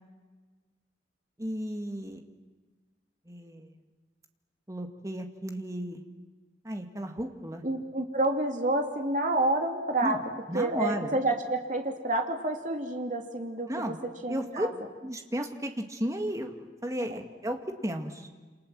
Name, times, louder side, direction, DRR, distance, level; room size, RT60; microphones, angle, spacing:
voice 1, 1.4-2.2 3.3-3.7 4.7-6.0 6.6-7.6 10.0-10.2 10.5-11.2 13.7-14.0 14.3-14.7 15.0-18.3, equal, 15° right, 4 dB, 2.2 m, -34 dB
voice 2, 7.6-10.2 10.5-13.9 14.2-14.7 17.1-17.2, right 2 dB, 40° right, 3 dB, 2.9 m, -29 dB
28.0 x 26.5 x 7.8 m, 1.4 s
head